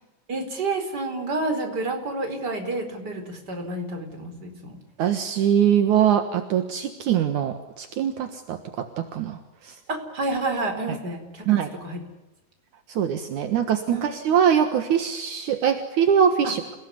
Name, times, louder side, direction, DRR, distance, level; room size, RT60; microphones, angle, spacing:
voice 1, 0.3-4.8 9.9-12.0 13.9-14.1 16.4-16.5, right 2 dB, 30° right, 5 dB, 5.0 m, -29 dB
voice 2, 5.0-9.4 9.6-9.7 10.9-11.0 11.5-11.7 12.9-16.6, right 8 dB, 70° right, 7 dB, 2.9 m, -22 dB
28.5 x 18.5 x 9.7 m, 1.1 s
omnidirectional pair, 3.7 m